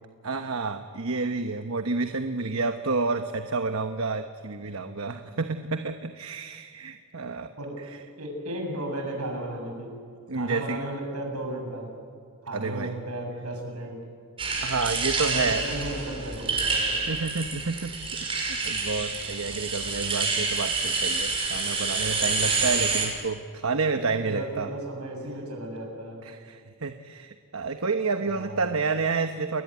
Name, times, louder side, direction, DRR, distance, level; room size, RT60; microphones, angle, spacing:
voice 1, 0.2-7.5 7.9-8.0 10.3-10.8 12.5-12.9 14.6-15.6 17.0-18.0 18.3-24.7 26.2-29.6, right 4 dB, 65° right, 7 dB, 1.1 m, -29 dB
voice 2, 8.2-9.9 10.3-11.9 12.4-14.0 15.2-17.0 24.1-26.3 28.2-28.7, right 1 dB, 85° right, 2 dB, 7.5 m, -35 dB
sound 1, 14.4-23.1, right 4 dB, 25° right, 6.0 m, -28 dB
30.0 x 21.0 x 9.5 m, 2.3 s
head